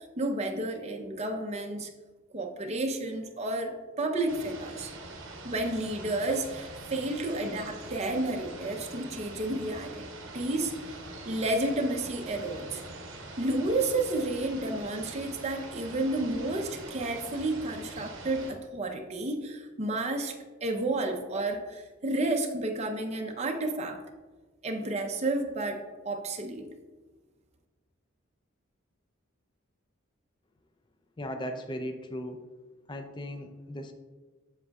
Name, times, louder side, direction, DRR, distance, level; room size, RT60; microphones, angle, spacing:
voice 1, 0.2-1.9 2.3-4.9 5.4-10.0 10.3-11.0 11.2-12.8 13.4-24.0 24.6-26.7, right 2 dB, 30° right, 2 dB, 0.7 m, -31 dB
sound 1, 4.3-18.5, right 2 dB, 65° right, 1.0 m, -44 dB
voice 2, 31.2-32.4 32.9-33.9, equal, 20° left, 6 dB, 0.4 m, -37 dB
7.7 x 7.2 x 2.4 m, 1.3 s
head